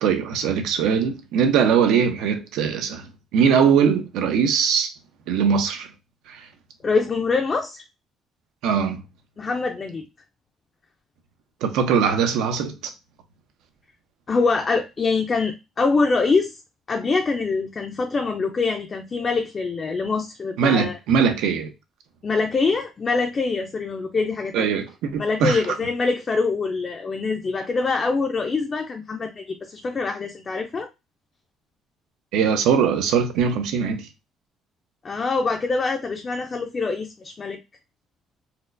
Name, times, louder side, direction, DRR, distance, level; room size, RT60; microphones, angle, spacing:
voice 1, 0.0-4.9 5.3-5.9 6.3-6.5 8.6-9.0 11.6-12.7 20.6-21.7 24.5-25.6 32.3-34.1, right 7 dB, 85° right, 0.7 m, -21 dB
voice 2, 6.8-7.8 9.4-10.1 14.3-16.5 16.9-21.0 22.2-24.7 25.2-30.9 35.0-37.6, left 4 dB, 25° left, 0.3 m, -24 dB
4.2 x 2.1 x 2.5 m
cardioid pair, 165°, 0 cm